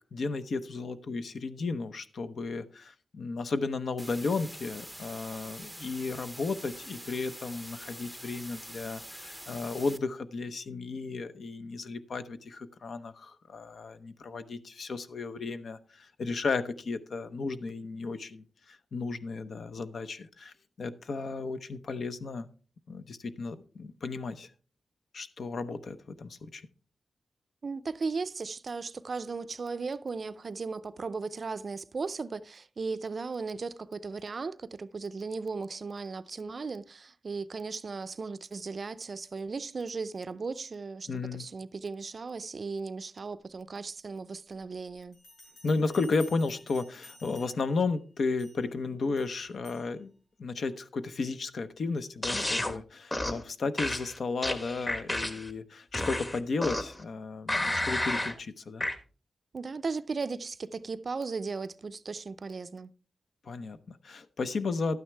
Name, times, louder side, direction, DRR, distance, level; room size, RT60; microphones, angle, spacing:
voice 1, 0.1-22.5 22.9-24.5 25.1-26.7 41.1-41.5 45.6-50.1 50.4-58.9 63.4-65.0, left 4 dB, 65° left, 0.8 m, -34 dB
sound 1, 4.0-10.0, equal, ahead, 0.6 m, -45 dB
voice 2, 27.6-45.2 59.5-62.9, right 4 dB, 45° right, 0.5 m, -36 dB
Bell, 45.1-47.8 48.4-48.7 49.2-49.9, left 2 dB, 85° left, 6.5 m, -53 dB
sound 2, 52.2-52.7 53.1-53.4 53.8-55.5 55.9-57.0 57.5-58.4 58.8-59.0, left 1 dB, 25° left, 1.2 m, -31 dB
12.0 x 9.3 x 3.3 m
wide cardioid pair, 115°, 0 cm